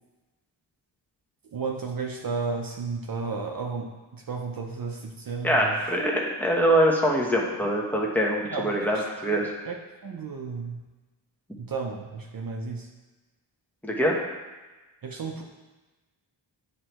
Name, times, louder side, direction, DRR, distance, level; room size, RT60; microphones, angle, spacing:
voice 1, 1.5-5.8 8.4-9.0 9.3-9.4 9.7-10.8 11.6-12.9 15.0-15.4, right 4 dB, 50° right, 1 dB, 0.7 m, -33 dB
voice 2, 5.4-9.5 13.8-14.2, equal, 5° left, -2 dB, 1.0 m, -24 dB
9.7 x 3.3 x 3.0 m, 1.2 s
wide cardioid pair, 105°, 46 cm